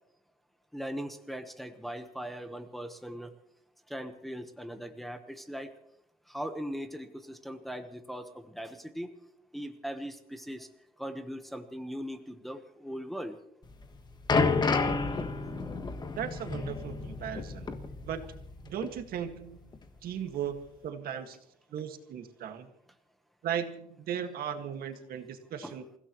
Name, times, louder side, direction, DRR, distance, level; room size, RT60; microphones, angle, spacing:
voice 1, 0.7-3.3 3.9-5.7 6.3-9.1 9.5-10.7 11.0-13.4 25.6-25.7, equal, ahead, 6 dB, 1.2 m, -39 dB
sound 1, 13.7-18.6 18.8-19.0 19.7-19.8, left 4 dB, 25° left, 1.5 m, -30 dB
voice 2, 16.1-17.7 18.0-18.2 18.6-19.7 20.0-21.4 21.7-22.7 23.4-25.8, right 8 dB, 70° right, 6 dB, 1.9 m, -37 dB
28.5 x 16.5 x 3.1 m, 0.75 s
cardioid pair, 145°, 16 cm